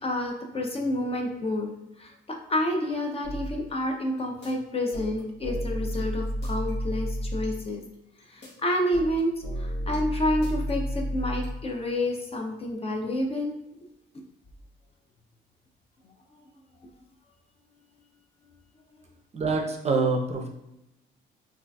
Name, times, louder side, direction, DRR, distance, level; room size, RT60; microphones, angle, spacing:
voice 1, 0.0-7.8 8.3-13.5, left 1 dB, 30° left, 2 dB, 0.5 m, -29 dB
sound 1, 3.2-3.5 4.2-4.5 4.9-7.7 8.2-8.5 8.9-11.7, equal, 65° left, 1.0 m, -31 dB
voice 2, 19.3-20.5, right 3 dB, 35° right, 2 dB, 0.5 m, -25 dB
3.7 x 2.4 x 2.2 m, 0.89 s
cardioid pair, 80°, 20 cm